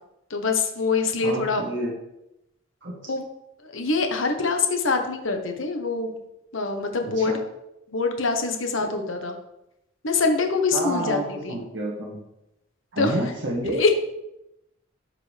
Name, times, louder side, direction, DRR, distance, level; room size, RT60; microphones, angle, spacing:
voice 1, 0.3-1.6 3.0-3.2 3.6-6.2 6.5-7.4 7.9-9.4 10.0-11.6 13.0-13.2 13.8-13.9, left 4 dB, 70° left, 5 dB, 1.1 m, -24 dB
voice 2, 1.2-1.9 2.8-2.9 7.0-7.4 8.8-8.9 10.7-12.2 12.9-13.8, right 1 dB, 60° right, -5 dB, 1.8 m, -29 dB
12.0 x 5.2 x 3.4 m, 0.87 s
head